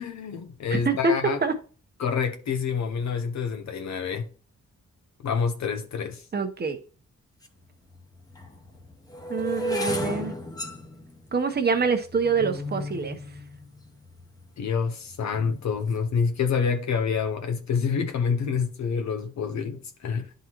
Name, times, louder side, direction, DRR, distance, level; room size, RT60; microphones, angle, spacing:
voice 1, 0.0-1.4 2.0-4.3 5.2-6.2 14.6-20.3, left 6 dB, 70° left, 0.8 m, -27 dB
voice 2, 0.7-1.5 6.3-6.8 9.3-10.3 11.3-13.2, right 4 dB, 35° right, 0.9 m, -25 dB
sound 1, 7.4-7.5 8.3-14.4 15.1-15.5 15.7-16.1, left 1 dB, 10° left, 1.0 m, -34 dB
10.5 x 3.8 x 3.0 m
wide cardioid pair, 135°, 29 cm